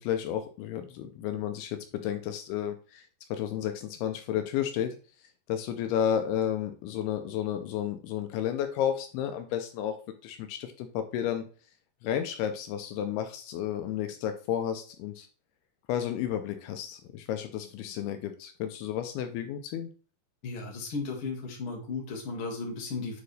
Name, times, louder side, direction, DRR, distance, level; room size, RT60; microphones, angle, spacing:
voice 1, 0.0-3.0 3.3-5.0 5.5-10.0 10.2-11.4 12.0-15.3 15.9-19.9, left 10 dB, 80° left, 7 dB, 2.6 m, -32 dB
voice 2, 20.4-23.2, left 4 dB, 45° left, -1 dB, 2.3 m, -35 dB
9.1 x 3.9 x 3.3 m, 0.38 s
omnidirectional pair, 4.6 m